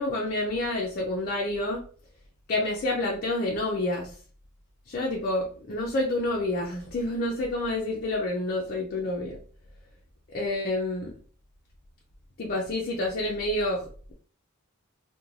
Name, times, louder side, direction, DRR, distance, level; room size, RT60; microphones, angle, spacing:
voice 1, 0.0-1.8 2.5-4.1 4.9-9.4 10.3-11.1 12.4-13.9, left 1 dB, 45° left, -2 dB, 0.4 m, -28 dB
2.4 x 2.1 x 3.1 m, 0.43 s
head